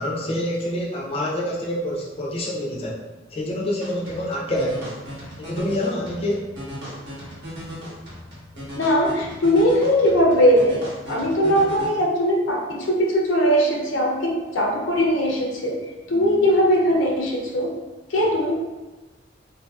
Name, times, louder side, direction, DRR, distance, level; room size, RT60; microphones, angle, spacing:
voice 1, 0.0-3.0 3.3-4.9 5.4-6.4, left 1 dB, 30° left, -5 dB, 0.5 m, -26 dB
sound 1, 3.8-11.9, equal, 65° right, 0.9 m, -37 dB
voice 2, 8.7-10.8 11.1-15.8 16.1-17.7 18.1-18.5, equal, 80° left, -1 dB, 0.6 m, -20 dB
2.8 x 2.5 x 2.3 m, 1.2 s
head